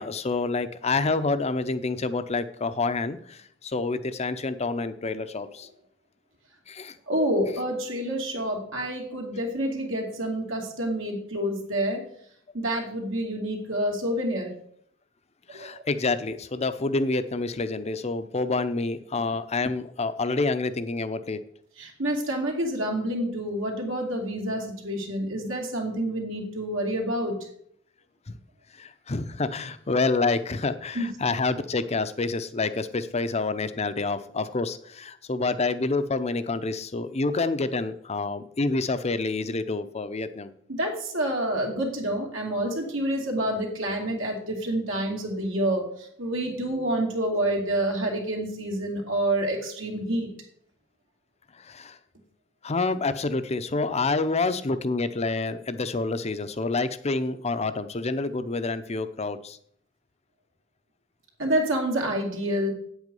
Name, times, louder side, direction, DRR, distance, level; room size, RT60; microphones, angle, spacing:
voice 1, 0.0-5.7 6.7-7.0 15.5-21.4 28.3-28.4 28.7-40.5 51.5-52.0 52.6-59.6, left 3 dB, 35° left, 12 dB, 0.6 m, -28 dB
voice 2, 7.1-12.0 12.5-14.5 15.5-15.7 21.8-27.4 30.9-31.1 40.7-45.9 46.2-50.3 61.4-62.7, right 1 dB, 75° right, 0 dB, 2.5 m, -28 dB
8.5 x 8.1 x 5.4 m, 0.66 s
head